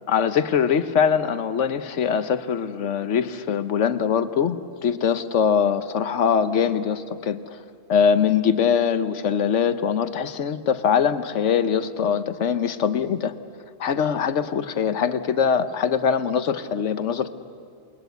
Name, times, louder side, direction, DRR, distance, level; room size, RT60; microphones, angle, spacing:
voice 1, 0.1-7.4 7.9-13.3 13.8-17.3, left 7 dB, 80° left, 11 dB, 1.3 m, -22 dB
28.5 x 21.5 x 8.0 m, 2.3 s
omnidirectional pair, 1.2 m